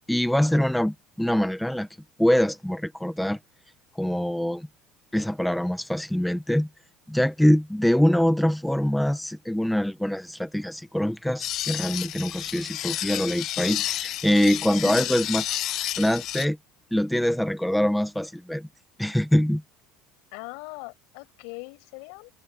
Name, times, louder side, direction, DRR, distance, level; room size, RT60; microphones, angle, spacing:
voice 1, 0.0-1.9 2.2-3.4 4.0-4.7 5.1-6.7 7.1-15.4 16.0-16.6 16.9-18.7 19.0-19.6, equal, ahead, 0.9 m, -24 dB
sound 1, 11.4-16.5, left 13 dB, 50° left, 0.7 m, -31 dB
voice 2, 20.3-22.3, left 31 dB, 75° left, 5.9 m, -40 dB
supercardioid pair, 125°, 0 cm